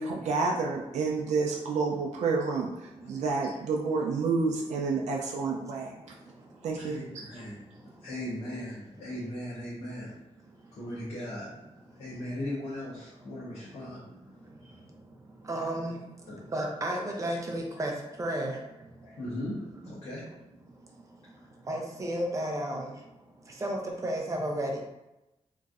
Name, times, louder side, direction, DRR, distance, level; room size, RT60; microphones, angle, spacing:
voice 1, 0.0-2.7 3.1-5.9 6.6-7.2, right 4 dB, 90° right, -1 dB, 0.4 m, -29 dB
voice 2, 1.1-1.5 2.8-3.3 4.4-4.5 4.9-7.2 7.5-8.1 8.6-8.7 10.4-10.7 11.9-12.0 13.4-19.1 20.7-24.9, right 1 dB, 30° right, 0 dB, 0.5 m, -36 dB
voice 3, 6.8-10.1 10.7-11.5 12.0-14.0 14.6-14.8 16.3-16.4 19.0-20.3, left 1 dB, 70° left, -8 dB, 0.9 m, -38 dB
3.0 x 2.5 x 2.4 m, 0.94 s
wide cardioid pair, 130°, 11 cm